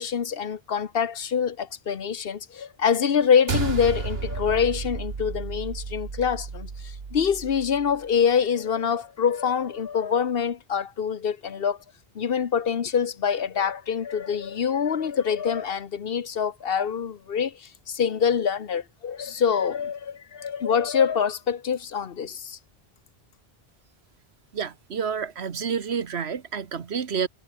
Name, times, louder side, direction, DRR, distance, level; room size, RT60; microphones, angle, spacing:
voice 1, 0.0-11.8 12.1-22.6, left 7 dB, 65° left, 1.2 m, -25 dB
sound 1, 3.5-8.0, right 4 dB, 70° right, 1.9 m, -32 dB
voice 2, 24.5-27.3, right 6 dB, 85° right, 1.5 m, -29 dB
omnidirectional pair, 1.1 m